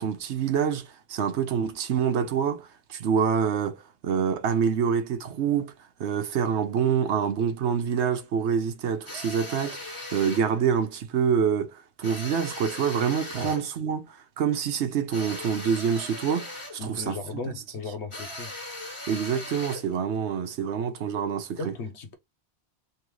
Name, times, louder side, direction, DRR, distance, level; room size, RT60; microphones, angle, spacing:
voice 1, 0.0-5.7 6.0-17.2 19.1-21.7, right 7 dB, 80° right, 1.0 m, -26 dB
sound 1, 9.1-10.5 12.0-13.7 15.1-16.8 18.1-19.9, left 1 dB, 25° left, 1.5 m, -39 dB
voice 2, 16.8-18.5 21.6-22.1, left 3 dB, 80° left, 1.2 m, -36 dB
3.6 x 3.1 x 3.1 m
omnidirectional pair, 1.1 m